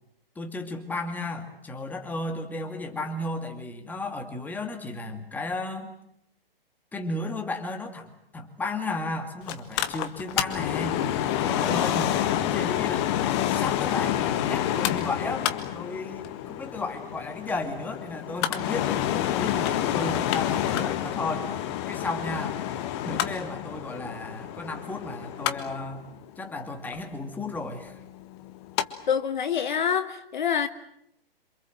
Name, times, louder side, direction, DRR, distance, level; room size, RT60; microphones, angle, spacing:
voice 1, 0.4-5.9 6.9-11.0 11.4-15.5 15.7-22.6 23.0-26.0 26.4-28.0, left 2 dB, 5° left, 4 dB, 2.4 m, -34 dB
Mechanical fan, 9.5-28.9 29.2-29.3, left 11 dB, 30° left, 1.7 m, -28 dB
voice 2, 29.1-30.7, left 7 dB, 50° left, 12 dB, 1.4 m, -26 dB
27.5 x 25.5 x 7.8 m, 0.75 s
figure-of-eight pair, 120°, 30 cm